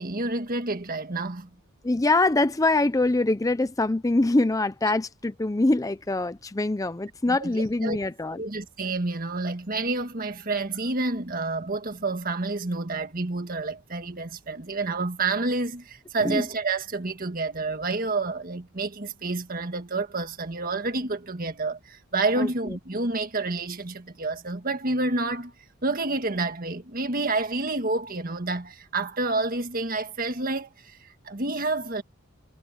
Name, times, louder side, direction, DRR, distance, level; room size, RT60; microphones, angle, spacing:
voice 1, 0.0-1.5 7.3-8.0 8.4-25.5 25.8-32.0, right 3 dB, 45° right, 1.7 m, -29 dB
voice 2, 1.8-8.4 16.2-16.4 22.4-22.5, left 2 dB, 15° left, 0.5 m, -24 dB
head